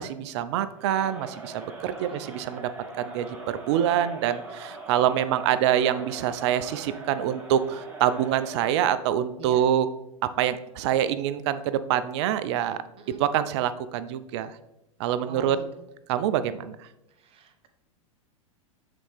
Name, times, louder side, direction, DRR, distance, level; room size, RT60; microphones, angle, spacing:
voice 1, 0.0-2.7 3.0-9.9 10.2-12.8 13.2-14.6 15.0-15.6 16.1-16.9, right 10 dB, 55° right, 13 dB, 0.5 m, -26 dB
Crowd, 0.8-8.8, right 3 dB, 10° right, 1.4 m, -42 dB
voice 2, 9.4-9.7 12.9-13.2 15.3-15.8 17.1-17.7, right 4 dB, 35° right, 6 dB, 0.9 m, -44 dB
7.6 x 4.1 x 3.3 m, 0.88 s
hypercardioid pair, 100°, 17 cm